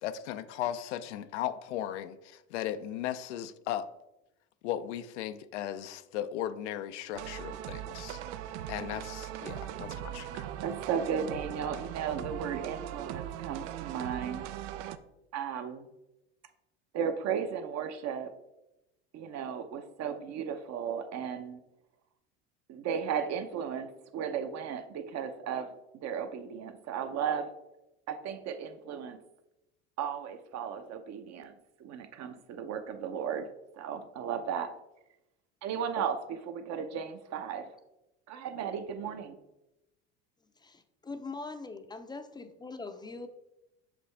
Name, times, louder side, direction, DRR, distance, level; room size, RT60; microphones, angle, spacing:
voice 1, 0.0-3.9 4.6-8.2 8.7-10.5, left 11 dB, 85° left, 12 dB, 0.5 m, -36 dB
sound 1, 7.1-15.0, right 11 dB, 80° right, 0.5 m, -39 dB
voice 2, 10.6-14.4 15.3-15.9 16.9-18.3 19.1-21.6 22.7-25.7 26.0-27.5 28.1-29.2 30.0-31.5 31.8-33.5 33.8-34.7 35.6-37.6 38.3-39.4, right 7 dB, 50° right, 8 dB, 0.8 m, -35 dB
voice 3, 40.6-43.3, left 3 dB, 15° left, 9 dB, 0.5 m, -42 dB
6.2 x 5.1 x 3.3 m, 0.92 s
hypercardioid pair, 85°, 34 cm